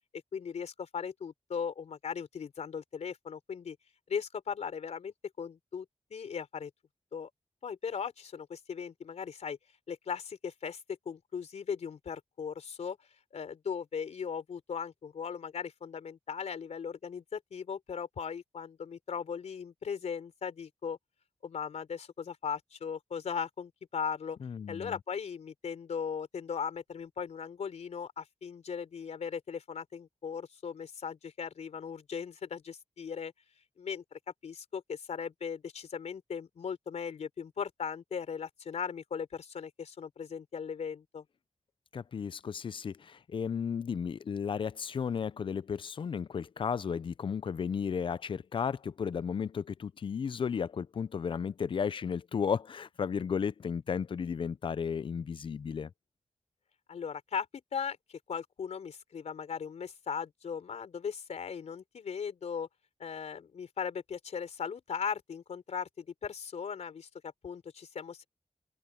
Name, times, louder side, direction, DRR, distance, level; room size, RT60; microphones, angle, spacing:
voice 1, 0.3-3.8 4.1-5.9 6.1-6.7 7.1-7.3 7.6-9.6 9.9-13.0 13.3-21.0 21.4-24.4 24.7-33.3 33.8-41.2 56.9-57.5 57.7-62.7 63.0-68.3, left 6 dB, 80° left, 3.8 m, -38 dB
voice 2, 24.4-25.0 41.9-55.9, left 6 dB, 50° left, 0.4 m, -34 dB
wide cardioid pair, 140°, 11 cm